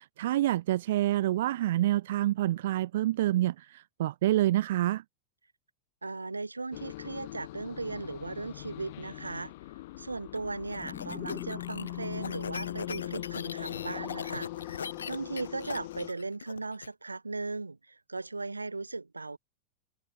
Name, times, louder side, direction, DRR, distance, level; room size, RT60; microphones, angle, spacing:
voice 1, 0.0-5.0, right 14 dB, 55° right, 0.3 m, -27 dB
voice 2, 6.0-9.5 10.0-19.4, right 3 dB, 80° right, 4.2 m, -37 dB
sound 1, 6.7-16.1, left 18 dB, 50° left, 1.9 m, -41 dB
sound 2, 10.3-16.9, left 6 dB, 70° left, 1.8 m, -41 dB
sound 3, 10.7-15.9, left 11 dB, 30° left, 4.3 m, -48 dB
figure-of-eight pair, 90°, 0 cm